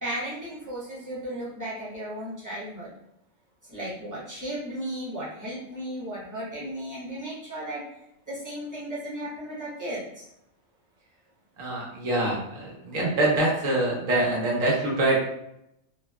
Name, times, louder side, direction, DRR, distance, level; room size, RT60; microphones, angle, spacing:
voice 1, 0.0-2.9 3.7-7.9 8.3-10.3, right 1 dB, 15° right, -8 dB, 0.8 m, -35 dB
voice 2, 11.6-15.2, right 2 dB, 85° right, -3 dB, 1.3 m, -25 dB
3.2 x 2.2 x 2.2 m, 0.79 s
omnidirectional pair, 1.3 m